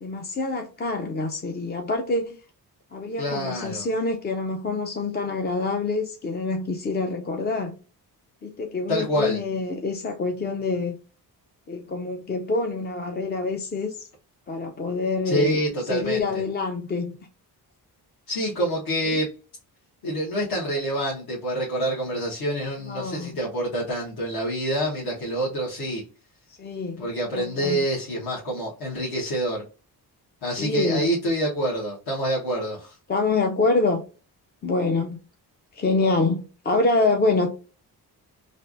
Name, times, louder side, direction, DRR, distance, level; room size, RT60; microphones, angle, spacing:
voice 1, 0.0-2.4 2.9-7.8 8.4-11.0 11.7-14.1 14.5-15.6 15.9-17.2 19.1-19.2 22.8-23.4 26.5-27.1 27.3-27.8 30.6-31.1 33.1-34.0 34.6-35.2 35.7-37.5, left 3 dB, 25° left, 0.4 m, -26 dB
voice 2, 3.2-3.8 8.9-9.4 15.2-16.4 18.3-19.3 20.0-26.0 27.0-29.6 30.4-32.9, right 1 dB, 65° left, 1.3 m, -27 dB
3.3 x 2.5 x 2.5 m
cardioid pair, 105°, 40 cm